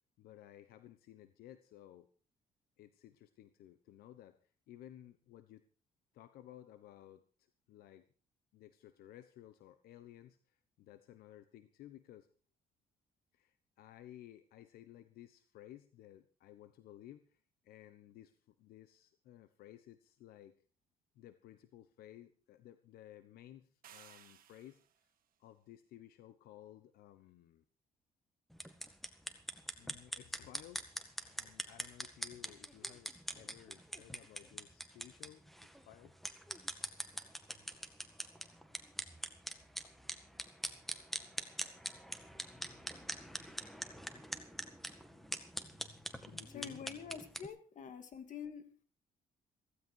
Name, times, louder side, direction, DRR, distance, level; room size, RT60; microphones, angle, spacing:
voice 1, 0.2-2.1 2.8-4.4 4.7-5.6 6.1-8.1 8.5-12.3 13.3-20.5 21.1-25.1 25.4-27.6 29.8-31.0 31.4-36.2 45.7-45.8 46.2-46.9, left 12 dB, 85° left, 11 dB, 1.1 m, -57 dB
sound 1, 23.8-25.1, right 11 dB, 70° right, 1.7 m, -59 dB
sound 2, 28.5-47.5, equal, ahead, 1.8 m, -44 dB
voice 2, 46.5-48.8, left 7 dB, 55° left, 9 dB, 2.8 m, -47 dB
16.0 x 15.0 x 4.7 m, 0.39 s
cardioid pair, 105°, 15 cm